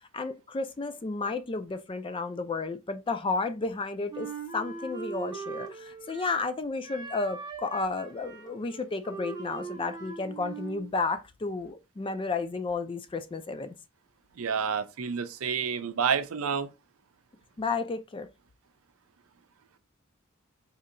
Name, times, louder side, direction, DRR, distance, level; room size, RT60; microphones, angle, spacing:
voice 1, 0.1-4.3 4.5-13.7 17.6-18.3, left 3 dB, 25° left, 0.4 m, -32 dB
Wind instrument woodwind instrument, 4.1-6.5 6.8-10.9, right 5 dB, 20° right, 0.7 m, -40 dB
voice 2, 14.4-16.7, right 6 dB, 80° right, 0.5 m, -29 dB
4.2 x 2.7 x 2.5 m
head